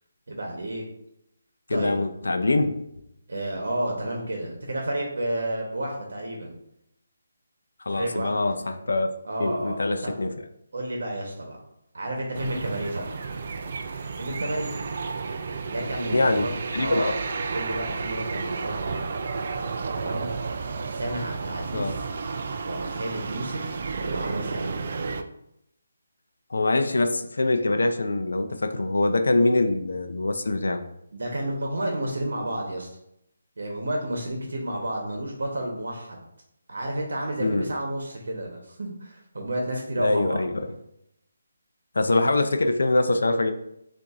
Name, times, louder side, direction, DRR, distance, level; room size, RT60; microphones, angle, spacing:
voice 1, 0.3-0.8 1.7-1.9 3.3-6.5 7.9-8.3 9.2-10.1 10.7-11.6 11.9-13.2 14.2-14.7 15.7-16.5 16.8-17.1 17.5-19.1 19.9-20.3 20.9-21.9 22.6-24.8 31.1-32.9 33.6-36.2 36.7-40.4, right 1 dB, 70° right, 0 dB, 0.9 m, -31 dB
voice 2, 1.7-2.7 7.8-9.1 9.4-10.4 16.1-17.1 21.7-22.0 26.5-30.8 37.4-37.7 40.0-40.7 41.9-43.5, left 2 dB, 85° left, 7 dB, 0.5 m, -24 dB
sound 1, 12.3-25.2, right 4 dB, 40° right, 0.3 m, -32 dB
6.8 x 2.6 x 2.4 m, 0.79 s
hypercardioid pair, 175°, 0 cm